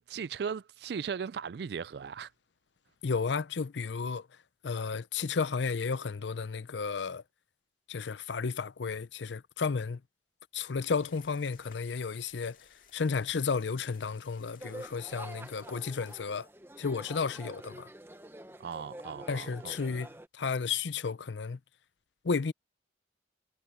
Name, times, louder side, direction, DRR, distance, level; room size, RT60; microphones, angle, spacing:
voice 1, 0.1-2.3 18.6-19.8, right 6 dB, 60° right, 0.3 m, -37 dB
voice 2, 3.0-4.3 4.6-7.2 7.9-10.0 10.5-12.6 12.9-16.5 16.8-17.9 19.3-20.1 20.3-21.6 22.2-22.5, left 5 dB, 80° left, 0.6 m, -33 dB
sound 1, 10.8-16.2, left 7 dB, 50° left, 2.3 m, -60 dB
sound 2, 14.6-20.3, right 1 dB, 15° right, 1.0 m, -47 dB
head